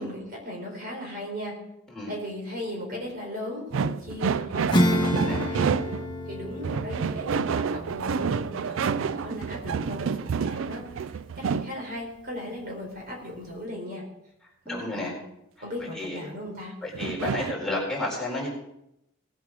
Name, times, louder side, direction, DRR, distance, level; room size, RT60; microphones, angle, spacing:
voice 1, 0.0-1.5 2.1-5.7 6.2-14.0 14.7-15.2 15.6-16.7, left 1 dB, 45° right, -1 dB, 4.4 m, -37 dB
sound 1, 3.7-6.1 6.6-11.7 16.9-17.6, right 6 dB, 65° right, 0.4 m, -29 dB
Acoustic guitar / Strum, 4.7-10.7, equal, 25° left, 1.4 m, -30 dB
voice 2, 5.0-5.4 14.6-15.1 15.9-16.2 16.8-18.5, left 2 dB, 5° left, -5 dB, 4.3 m, -31 dB
19.0 x 8.3 x 4.8 m, 0.82 s
head